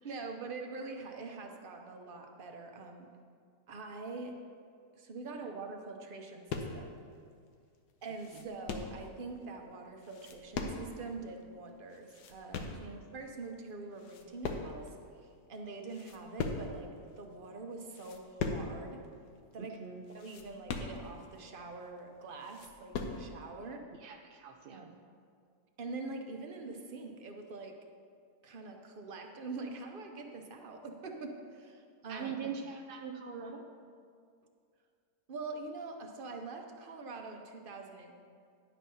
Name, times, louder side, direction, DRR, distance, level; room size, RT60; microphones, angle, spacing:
voice 1, 0.0-3.1 3.7-4.4 4.9-7.0 8.0-15.0 15.5-16.9 17.2-19.0 19.5-19.8 20.1-23.8 24.7-24.9 25.8-27.7 28.4-32.3 35.3-38.3, right 3 dB, 45° right, 3 dB, 0.8 m, -44 dB
sound 1, 6.5-6.9 7.5-7.6 7.9-9.0 10.0-11.1 11.4-11.5 11.9-12.9 13.5-13.7 14.0-15.0 15.3-15.4 15.8-16.9 17.3-17.5 17.9-18.8 19.0-19.1 19.5-19.6 20.1-21.3 21.8-21.9 22.2-23.3, left 4 dB, 85° left, 1.4 m, -39 dB
voice 2, 19.6-20.0 24.0-24.9 32.1-33.6, right 6 dB, 70° right, 3 dB, 0.5 m, -42 dB
10.5 x 5.9 x 5.5 m, 2.2 s
omnidirectional pair, 1.7 m